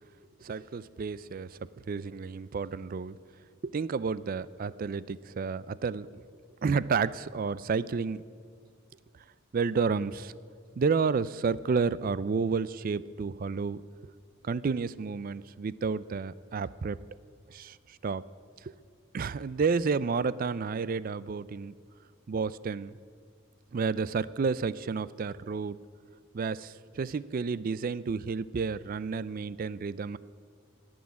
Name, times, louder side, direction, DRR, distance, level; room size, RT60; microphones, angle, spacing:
voice 1, 0.4-1.6 1.9-3.2 3.6-6.2 6.6-8.2 9.5-10.3 10.8-13.8 14.4-17.0 17.5-18.2 18.6-18.7 19.1-21.7 22.3-23.0 23.7-25.8 26.3-30.2, right 5 dB, 40° right, 19 dB, 0.3 m, -31 dB
17.5 x 6.3 x 9.6 m, 2.1 s
head